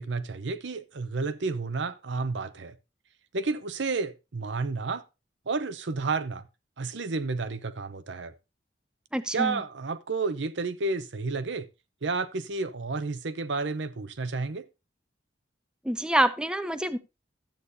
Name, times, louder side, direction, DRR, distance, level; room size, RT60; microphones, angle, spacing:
voice 1, 0.0-2.7 3.3-5.0 5.5-6.5 6.8-8.3 9.3-11.7 12.0-14.7, right 3 dB, 75° right, 0.7 m, -31 dB
voice 2, 9.1-9.6 15.9-17.0, right 1 dB, 5° right, 0.5 m, -26 dB
13.0 x 8.2 x 2.7 m
head